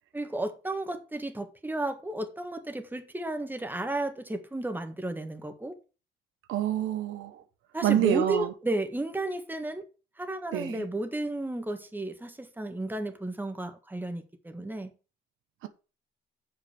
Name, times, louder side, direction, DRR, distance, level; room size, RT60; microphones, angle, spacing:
voice 1, 0.1-5.8 7.7-9.8 10.2-14.9, right 2 dB, 10° right, 1.7 m, -33 dB
voice 2, 6.5-7.4 7.8-8.5 10.5-10.8 15.6-15.7, right 12 dB, 90° right, 1.1 m, -27 dB
6.9 x 5.7 x 7.0 m
cardioid pair, 90°, 20 cm